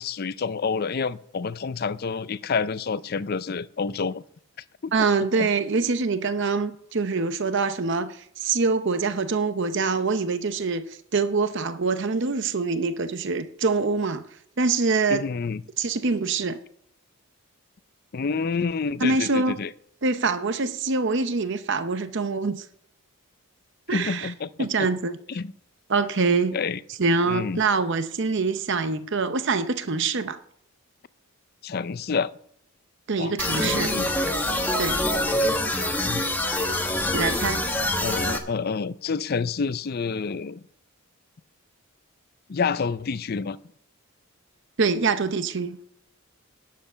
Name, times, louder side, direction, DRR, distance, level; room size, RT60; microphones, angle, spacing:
voice 1, 0.0-4.2 4.8-4.9 5.4-5.5 15.1-15.6 18.1-19.7 23.9-24.9 25.3-25.5 26.5-26.8 27.3-27.6 31.6-32.3 33.2-34.1 36.0-36.2 38.0-40.6 42.5-43.6, left 5 dB, 45° left, 0.4 m, -28 dB
voice 2, 4.9-14.2 14.6-15.2 15.8-16.6 19.0-19.6 20.0-22.6 23.9-24.3 24.6-25.2 25.9-26.6 27.0-30.4 33.1-33.9 34.8-35.0 37.1-37.6 44.8-45.8, right 4 dB, 55° right, 0.7 m, -24 dB
sound 1, 33.4-38.4, left 1 dB, 10° left, 1.1 m, -25 dB
11.5 x 7.7 x 6.6 m
head